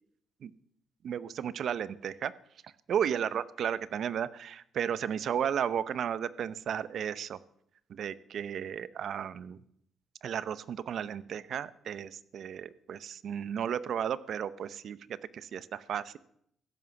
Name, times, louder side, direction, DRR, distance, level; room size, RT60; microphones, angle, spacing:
voice 1, 1.0-2.3 2.6-7.4 7.9-9.6 10.2-16.2, right 8 dB, 65° right, 16 dB, 0.8 m, -34 dB
15.5 x 11.0 x 7.1 m, 0.70 s
cardioid pair, 90°, 0 cm